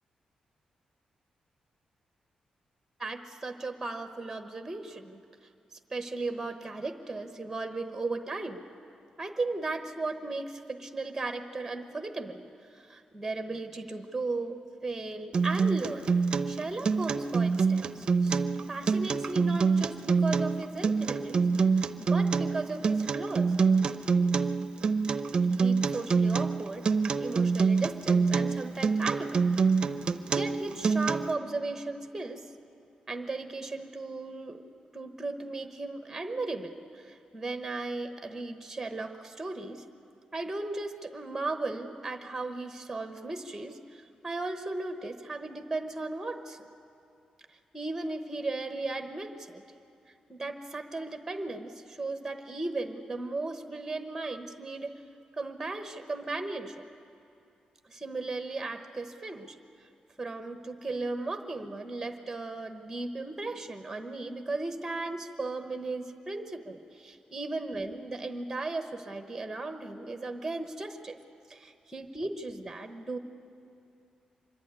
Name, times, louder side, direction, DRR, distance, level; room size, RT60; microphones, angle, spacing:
voice 1, 3.0-5.2 5.7-8.6 9.2-12.4 12.7-16.1 16.5-18.4 18.7-21.5 22.0-23.5 25.6-26.9 27.2-29.4 30.3-32.5 33.1-34.6 34.9-39.8 40.3-46.6 47.5-49.6 50.3-55.0 55.3-56.8 57.9-59.6 60.2-71.2 71.5-73.2, right 3 dB, 10° right, 7 dB, 0.9 m, -36 dB
Acoustic guitar, 15.3-31.3, right 5 dB, 40° right, 0.5 m, -26 dB
25.0 x 11.5 x 9.7 m, 2.6 s
wide cardioid pair, 170°, 2 cm